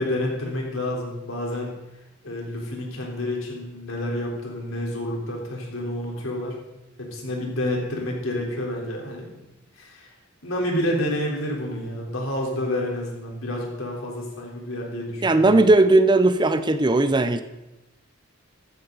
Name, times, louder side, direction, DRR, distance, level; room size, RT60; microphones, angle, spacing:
voice 1, 0.0-1.7 2.2-6.6 7.0-9.5 9.7-10.1 10.4-15.5, left 1 dB, 80° left, -1 dB, 3.9 m, -29 dB
voice 2, 15.2-17.4, right 2 dB, 20° right, 10 dB, 0.6 m, -17 dB
14.5 x 13.0 x 4.0 m, 0.98 s
head